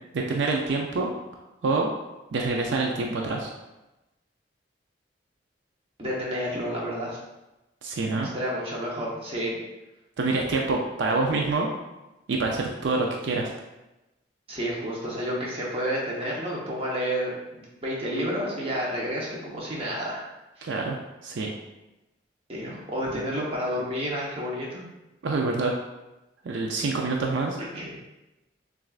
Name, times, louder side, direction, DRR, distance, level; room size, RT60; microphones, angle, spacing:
voice 1, 0.1-1.1 1.6-1.9 2.3-3.5 7.8-8.3 10.2-11.7 12.3-13.5 20.6-21.0 21.2-21.5 25.2-25.7 26.4-27.6, right 3 dB, 75° right, 1 dB, 0.4 m, -26 dB
voice 2, 6.0-7.2 8.3-9.6 14.5-20.2 20.6-20.7 22.5-24.8 27.6-28.0, equal, 30° right, -4 dB, 0.9 m, -30 dB
6.2 x 2.4 x 2.4 m, 1.0 s
head